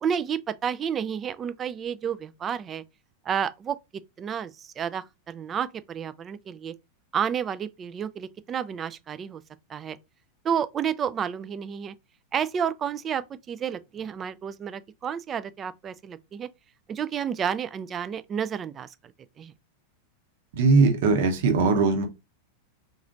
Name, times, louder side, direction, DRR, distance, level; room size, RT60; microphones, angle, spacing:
voice 1, 0.0-2.8 3.3-3.8 4.2-6.7 7.1-9.4 9.7-10.0 10.4-11.9 12.3-16.5 16.9-18.9 19.4-19.5, right 8 dB, 25° right, 0.3 m, -30 dB
voice 2, 20.5-22.0, right 4 dB, 55° right, 0.9 m, -20 dB
3.9 x 3.0 x 2.5 m
figure-of-eight pair, 90°, 0 cm